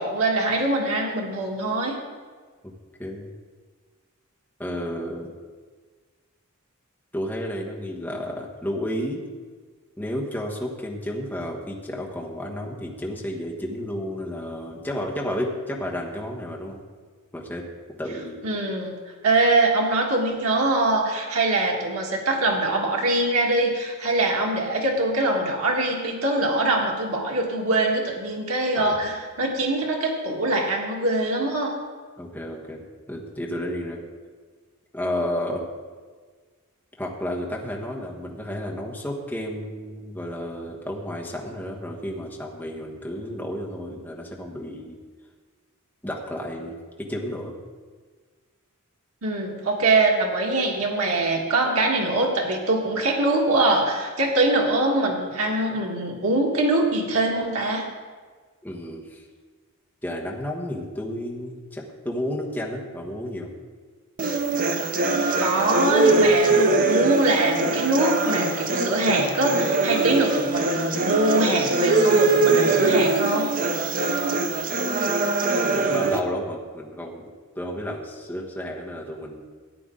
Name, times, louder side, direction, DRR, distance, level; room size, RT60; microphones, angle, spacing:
voice 1, 0.0-1.9 18.4-18.9 19.2-31.8 49.2-57.8 65.4-73.5, right 2 dB, 90° right, -1 dB, 1.7 m, -23 dB
voice 2, 4.6-5.3 7.1-9.2 10.0-16.8 17.3-17.6 18.0-18.4 28.8-29.0 32.2-34.0 34.9-35.6 37.0-45.0 46.0-47.5 58.6-59.2 60.0-63.5 75.8-77.2 77.5-79.5, left 1 dB, 10° left, -2 dB, 1.3 m, -32 dB
sound 1, 64.2-76.2, right 3 dB, 40° right, 0.8 m, -22 dB
13.5 x 9.0 x 3.8 m, 1.5 s
head